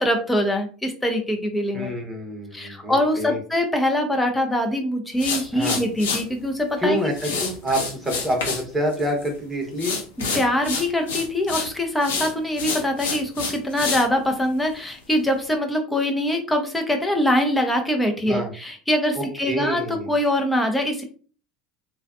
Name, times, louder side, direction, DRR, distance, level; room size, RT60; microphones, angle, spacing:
voice 1, 0.0-1.9 2.5-7.0 10.3-21.0, left 1 dB, 10° left, 4 dB, 0.7 m, -23 dB
voice 2, 1.7-3.4 5.5-5.8 6.8-10.0 18.2-18.5 19.1-20.1, equal, 15° right, 1 dB, 1.0 m, -27 dB
sound 1, 5.2-6.2 7.1-8.6 8.9-9.4 9.8-11.7 12.0-14.1, left 4 dB, 75° left, 0.7 m, -28 dB
2.4 x 2.2 x 2.5 m, 0.40 s
hypercardioid pair, 75°, 0 cm